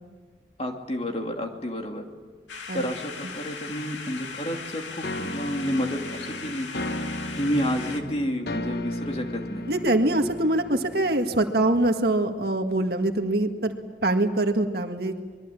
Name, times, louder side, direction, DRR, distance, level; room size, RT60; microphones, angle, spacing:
voice 1, 0.6-2.0 2.7-6.7 7.3-9.6, equal, 35° left, 2 dB, 2.8 m, -30 dB
sound 1, 2.5-8.0, left 5 dB, 80° left, 2.2 m, -38 dB
sound 2, 5.0-11.9, left 1 dB, 55° left, 1.1 m, -35 dB
voice 2, 9.7-13.7 14.0-15.2, right 1 dB, 55° right, 5 dB, 1.9 m, -24 dB
25.0 x 22.5 x 8.6 m, 1.5 s
head